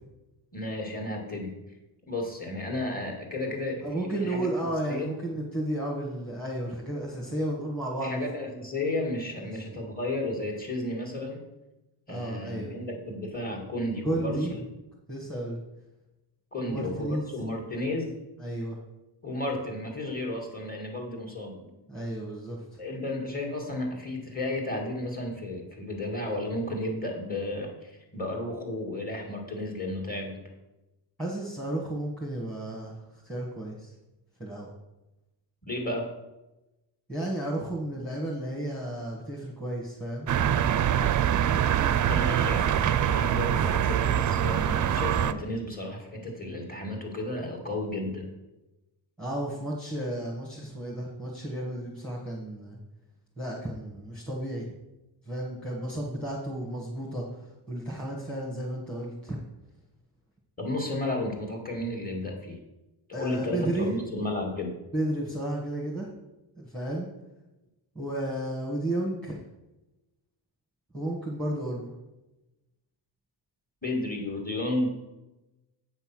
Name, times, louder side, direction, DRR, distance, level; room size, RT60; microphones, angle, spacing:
voice 1, 0.5-1.6 2.1-5.1 8.0-11.4 12.1-14.5 16.5-18.2 19.2-21.7 22.8-30.4 35.7-36.0 42.1-48.3 60.6-62.6 63.1-64.7 73.8-74.9, left 1 dB, 20° left, 1 dB, 2.0 m, -33 dB
voice 2, 3.8-8.2 12.1-12.7 14.0-14.7 15.1-15.6 16.6-17.3 18.4-18.8 21.9-22.6 31.2-33.9 34.4-34.7 37.1-40.3 49.2-52.8 53.4-54.7 55.2-57.2 57.7-59.4 63.1-63.9 64.9-66.1 66.6-67.1 67.9-69.4 70.9-71.9, right 1 dB, ahead, -3 dB, 1.3 m, -32 dB
sound 1, 40.3-45.3, right 10 dB, 45° right, 0.4 m, -24 dB
8.2 x 5.6 x 6.0 m, 1.0 s
wide cardioid pair, 145°, 46 cm